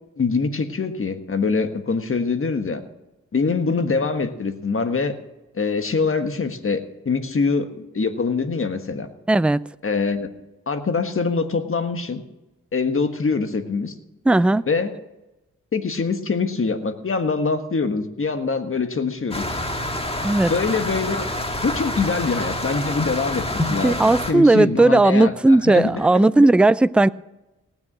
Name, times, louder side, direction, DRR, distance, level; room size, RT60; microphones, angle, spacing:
voice 1, 0.2-2.8 3.3-5.1 5.5-7.7 7.9-9.1 9.8-10.3 10.7-12.2 12.7-13.9 14.3-14.9 15.7-19.4 20.4-21.2 21.6-26.5, left 4 dB, 45° left, 1.5 m, -24 dB
voice 2, 9.3-9.6 14.3-14.7 20.2-20.5 23.8-27.1, right 2 dB, 5° right, 0.3 m, -16 dB
sound 1, 19.3-24.3, left 1 dB, 20° left, 1.7 m, -27 dB
18.5 x 7.1 x 6.1 m
cardioid pair, 60°, 30 cm